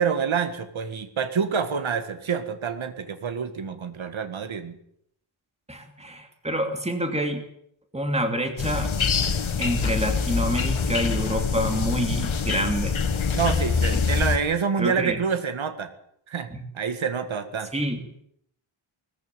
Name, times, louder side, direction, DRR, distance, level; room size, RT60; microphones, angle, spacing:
voice 1, 0.0-4.8 13.3-15.9 16.3-16.5 16.7-17.7, right 6 dB, 70° right, 9 dB, 1.9 m, -27 dB
voice 2, 5.7-7.4 7.9-8.9 9.6-12.9 13.9-14.0 14.8-15.2 16.5-16.6 17.7-18.0, equal, 15° right, 5 dB, 2.7 m, -27 dB
sound 1, 8.6-14.4, left 5 dB, 70° left, 2.0 m, -25 dB
20.0 x 14.5 x 9.2 m, 0.72 s
wide cardioid pair, 140°, 49 cm